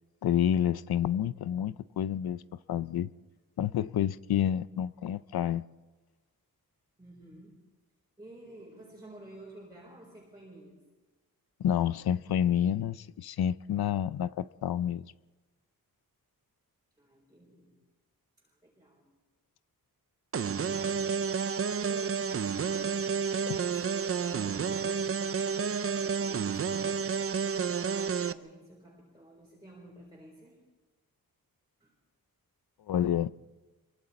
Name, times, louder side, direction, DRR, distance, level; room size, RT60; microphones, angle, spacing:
voice 1, 0.2-2.4 2.7-3.1 3.6-5.6 11.6-15.1 23.5-23.6 32.9-33.3, left 10 dB, 80° left, 0.6 m, -29 dB
voice 2, 7.0-7.7 8.2-10.8 17.0-17.7 18.4-19.1 21.7-27.4 28.1-30.6 31.8-32.0, right 1 dB, 10° right, 4.0 m, -53 dB
sound 1, 20.3-28.3, right 6 dB, 40° right, 0.6 m, -30 dB
27.0 x 23.5 x 4.2 m
wide cardioid pair, 170°, 36 cm